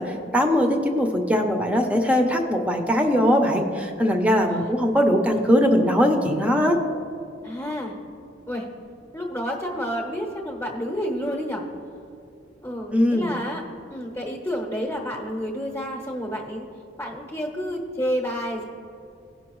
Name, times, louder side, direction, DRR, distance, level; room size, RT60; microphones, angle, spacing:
voice 1, 0.0-6.8 12.9-13.3, equal, 5° right, 3 dB, 0.7 m, -21 dB
voice 2, 7.4-7.9 8.5-8.7 9.1-11.7 12.6-13.6 13.9-16.7 17.0-18.6, equal, 15° left, -2 dB, 0.9 m, -30 dB
16.5 x 5.6 x 3.1 m, 2.6 s
head